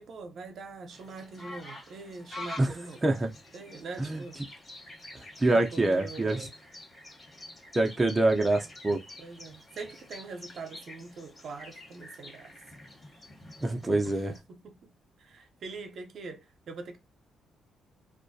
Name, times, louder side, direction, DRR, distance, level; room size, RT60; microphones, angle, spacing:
voice 1, 0.0-3.0 3.5-4.4 5.5-6.5 9.2-12.5 14.0-14.9 15.2-17.0, right 4 dB, 60° right, 0.6 m, -43 dB
sound 1, 0.9-14.4, left 2 dB, 25° left, 1.2 m, -47 dB
voice 2, 5.4-6.5 7.7-9.0 13.6-14.3, right 2 dB, 20° right, 0.5 m, -25 dB
2.3 x 2.1 x 2.6 m
cardioid pair, 90°, 0 cm